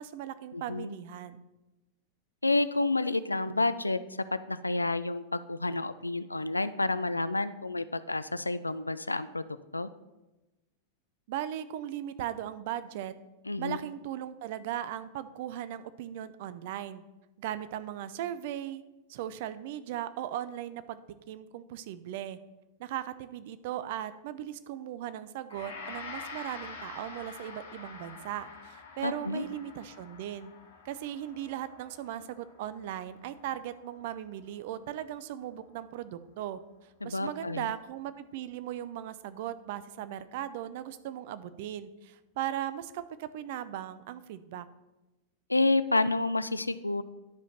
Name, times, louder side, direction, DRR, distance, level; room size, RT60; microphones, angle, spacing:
voice 1, 0.0-1.4 11.3-13.1 13.6-17.0 17.4-18.8 19.1-21.0 21.3-22.4 22.8-30.5 30.8-36.6 37.0-44.7, right 11 dB, 50° right, 13 dB, 0.6 m, -38 dB
voice 2, 0.5-1.0 2.4-4.0 4.3-9.4 9.7-9.9 13.5-13.8 29.0-29.4 37.0-37.7 45.5-47.0, left 2 dB, 85° left, 14 dB, 0.4 m, -29 dB
Gong, 25.5-34.7, left 4 dB, 65° left, 1.6 m, -47 dB
10.5 x 5.1 x 5.8 m, 1.0 s
figure-of-eight pair, 90°, 0 cm